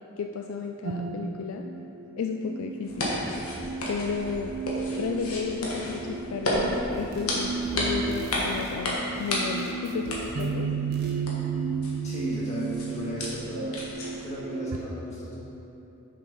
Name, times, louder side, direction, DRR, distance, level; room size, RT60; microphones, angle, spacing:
voice 1, 0.2-1.7 2.2-3.1 3.9-4.6 5.0-10.7, left 5 dB, 70° left, 3 dB, 0.3 m, -33 dB
sound 1, 0.8-14.8, right 5 dB, 80° right, 0.5 m, -34 dB
sound 2, 2.8-14.4, left 1 dB, 90° left, 1.4 m, -33 dB
sound 3, 6.9-7.4 7.6-10.6 10.9-11.2, equal, 50° right, 0.9 m, -42 dB
voice 2, 12.0-13.8 14.2-15.4, equal, 30° left, -7 dB, 1.7 m, -34 dB
6.8 x 4.8 x 5.3 m, 2.9 s
head